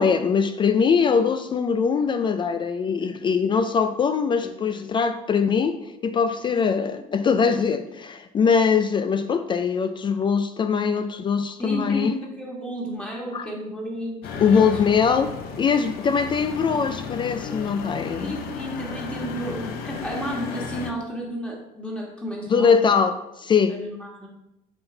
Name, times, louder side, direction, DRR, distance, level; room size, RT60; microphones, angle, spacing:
voice 1, 0.0-12.1 13.3-13.5 14.4-18.3 22.5-23.8, left 6 dB, 30° left, 9 dB, 0.4 m, -22 dB
voice 2, 11.6-14.7 18.2-23.0 23.7-24.3, equal, 5° left, -2 dB, 1.6 m, -32 dB
sound 1, 14.2-20.9, left 6 dB, 65° left, 0.8 m, -34 dB
7.7 x 4.4 x 3.9 m, 0.89 s
cardioid pair, 120°, 17 cm